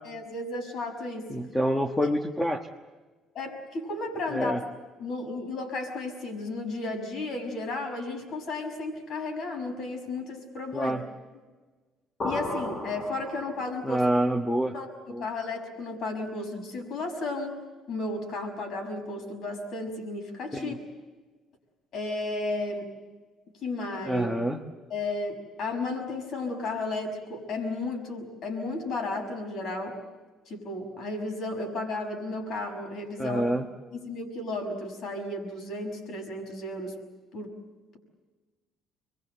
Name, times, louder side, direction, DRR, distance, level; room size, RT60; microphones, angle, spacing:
voice 1, 0.0-1.3 2.0-2.1 3.3-4.6 5.0-10.9 12.2-14.0 14.7-17.6 17.9-20.8 21.9-22.9 23.6-24.3 24.9-30.0 30.5-33.6 33.9-37.0 37.3-37.5, left 2 dB, 55° left, 4 dB, 5.7 m, -33 dB
voice 2, 1.3-2.7 4.3-4.6 10.7-11.0 13.8-14.7 15.1-15.2 20.5-20.8 24.1-24.6 33.2-33.6, equal, 10° left, 3 dB, 1.3 m, -27 dB
sound 1, 12.2-13.9, left 2 dB, 35° left, 2.0 m, -34 dB
26.5 x 22.5 x 7.9 m, 1.3 s
cardioid pair, 130°, 0 cm